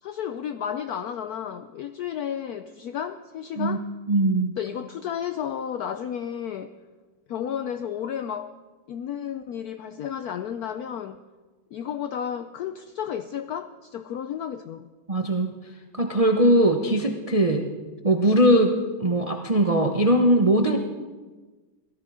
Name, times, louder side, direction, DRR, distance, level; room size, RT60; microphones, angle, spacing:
voice 1, 0.0-3.9 4.6-6.7 7.3-8.5 8.9-11.2 11.7-14.9, left 9 dB, 75° left, 10 dB, 0.8 m, -32 dB
voice 2, 4.1-4.5 15.1-15.5 16.0-17.6 18.0-20.8, right 1 dB, 40° right, 3 dB, 0.4 m, -20 dB
18.0 x 12.5 x 4.9 m, 1.3 s
omnidirectional pair, 2.2 m